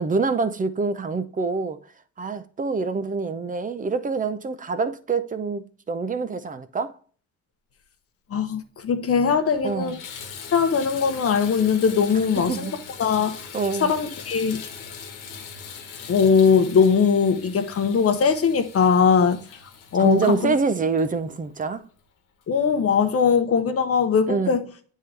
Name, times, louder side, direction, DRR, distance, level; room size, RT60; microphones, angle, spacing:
voice 1, 0.0-1.8 2.2-6.9 9.6-10.0 12.4-12.7 13.5-13.9 20.0-21.9 24.3-24.6, right 4 dB, 25° right, 0.6 m, -25 dB
voice 2, 8.3-10.0 10.5-12.7 13.0-13.5 13.8-14.6 16.1-19.4 19.9-20.5 22.5-24.6, left 6 dB, 45° left, 0.8 m, -20 dB
Water tap faucet / Bathtub (filling or washing), 8.8-8.9 9.4-21.8 22.4-22.5 23.0-23.1, left 6 dB, 80° left, 1.2 m, -41 dB
9.2 x 3.7 x 3.3 m
cardioid pair, 100°, 32 cm